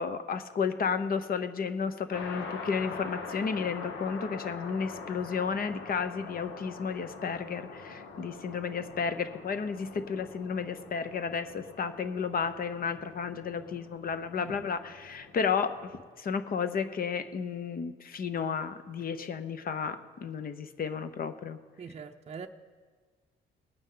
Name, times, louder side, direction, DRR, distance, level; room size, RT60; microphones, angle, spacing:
voice 1, 0.0-15.9 16.2-21.6, left 6 dB, 45° left, 11 dB, 0.8 m, -32 dB
sound 1, 2.1-16.0, left 4 dB, 85° left, 1.3 m, -44 dB
voice 2, 21.8-22.5, right 6 dB, 35° right, 5 dB, 0.6 m, -42 dB
19.5 x 8.9 x 3.8 m, 1.5 s
cardioid pair, 90°, 20 cm